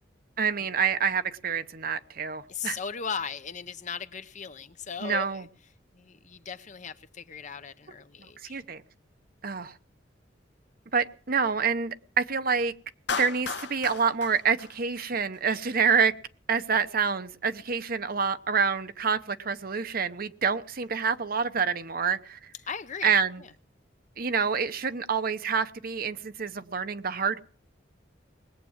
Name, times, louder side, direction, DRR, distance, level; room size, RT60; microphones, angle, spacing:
voice 1, 0.4-2.8 5.0-5.4 8.5-8.8 9.4-9.7 10.9-12.7 13.2-16.1 16.5-22.4 23.0-23.4 24.2-27.4, right 6 dB, 50° right, 11 dB, 0.9 m, -27 dB
voice 2, 2.5-5.5 5.9-8.6 22.6-23.5, left 6 dB, 40° left, 11 dB, 0.8 m, -38 dB
Clapping, 13.1-15.4, left 5 dB, 65° left, 1.0 m, -35 dB
20.5 x 8.4 x 7.3 m, 0.42 s
head